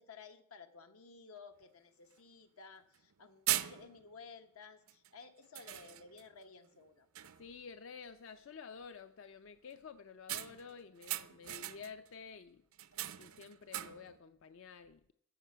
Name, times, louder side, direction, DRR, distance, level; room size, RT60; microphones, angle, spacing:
voice 1, 0.0-7.1, left 4 dB, 85° left, 6 dB, 1.1 m, -55 dB
sound 1, 1.6-1.7 2.1-2.2 2.9-3.1 3.5-4.2 4.9-5.1 5.5-6.3 6.7-6.9 7.1-7.6 10.3-12.1 12.7-14.2, right 14 dB, 75° right, 0.5 m, -40 dB
voice 2, 7.4-12.6 13.2-15.1, left 5 dB, 60° left, 10 dB, 0.4 m, -51 dB
14.5 x 6.8 x 5.7 m, 0.72 s
head